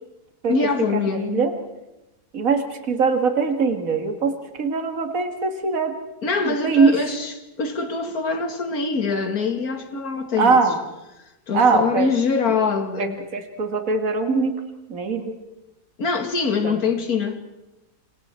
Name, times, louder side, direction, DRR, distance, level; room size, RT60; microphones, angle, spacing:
voice 1, 0.5-1.5 6.2-10.6 11.5-13.2 16.0-17.4, left 4 dB, 70° left, 2.5 m, -24 dB
voice 2, 1.1-1.5 2.3-4.3 4.6-5.9 6.4-7.0 10.4-10.8 11.5-12.1 13.0-14.5 14.9-15.3 16.6-16.8, right 4 dB, 60° right, 2.4 m, -21 dB
28.0 x 25.0 x 4.4 m
omnidirectional pair, 1.7 m